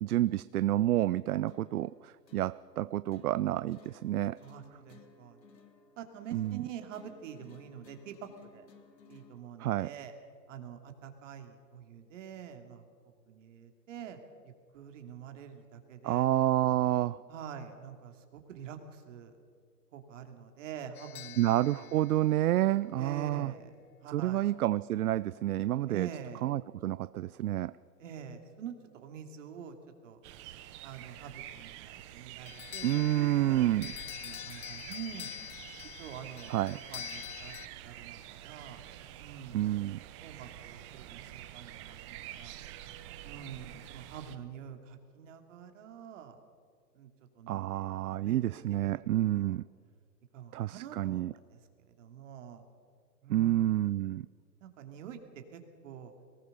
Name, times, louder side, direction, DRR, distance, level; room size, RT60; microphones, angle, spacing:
voice 1, 0.0-4.4 6.3-6.6 9.6-9.9 16.0-17.2 21.4-23.5 24.1-26.1 26.4-27.7 32.8-33.9 36.5-36.8 39.5-40.0 47.5-49.6 50.5-51.3 53.3-54.3, right 14 dB, 65° right, 18 dB, 0.5 m, -29 dB
sound 1, 1.5-9.5, left 5 dB, 85° left, 2.9 m, -59 dB
voice 2, 4.4-5.4 6.0-8.6 9.1-10.1 10.5-12.8 13.3-14.2 14.7-16.2 17.3-19.3 19.9-22.2 23.0-23.7 24.0-24.4 25.9-26.5 28.0-29.7 30.0-30.2 30.8-33.9 34.2-35.3 36.0-37.6 37.8-38.8 39.2-39.6 40.2-42.6 43.2-46.4 46.9-47.1 47.4-47.9 48.2-49.4 50.3-51.2 51.5-51.6 52.0-52.6 53.2-53.8 54.6-55.2 55.5-56.1, right 8 dB, 50° right, 6 dB, 2.8 m, -46 dB
sound 2, 20.9-23.2 32.5-37.7, left 14 dB, 60° left, 0.6 m, -45 dB
sound 3, 30.2-44.4, right 12 dB, 20° right, 0.6 m, -48 dB
22.5 x 19.0 x 6.8 m, 2.1 s
hypercardioid pair, 140°, 49 cm